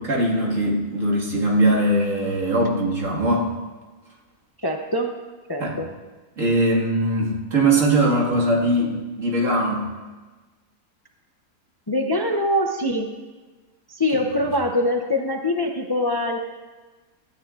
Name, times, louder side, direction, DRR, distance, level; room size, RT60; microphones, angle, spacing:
voice 1, 0.0-3.5 5.6-5.8 6.4-9.9, right 1 dB, 55° right, -3 dB, 2.2 m, -21 dB
voice 2, 4.6-5.1 5.5-5.9 11.9-13.1 13.9-16.4, left 1 dB, 35° left, 3 dB, 0.3 m, -23 dB
17.0 x 13.0 x 2.5 m, 1.3 s
omnidirectional pair, 1.6 m